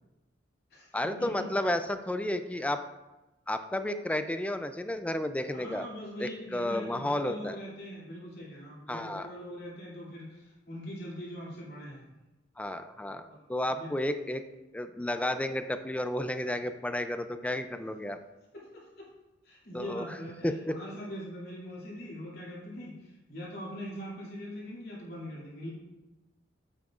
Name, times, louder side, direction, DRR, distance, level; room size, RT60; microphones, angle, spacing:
voice 1, 0.9-2.8 3.5-5.9 6.2-7.6 8.9-9.3 12.6-14.4 14.7-18.2 19.7-20.2 20.4-20.7, left 1 dB, 5° left, 9 dB, 0.4 m, -32 dB
voice 2, 5.5-12.1 13.3-13.4 13.7-13.9 18.5-19.1 19.4-25.7, equal, 55° left, -5 dB, 2.7 m, -42 dB
8.5 x 7.9 x 2.5 m, 1.1 s
head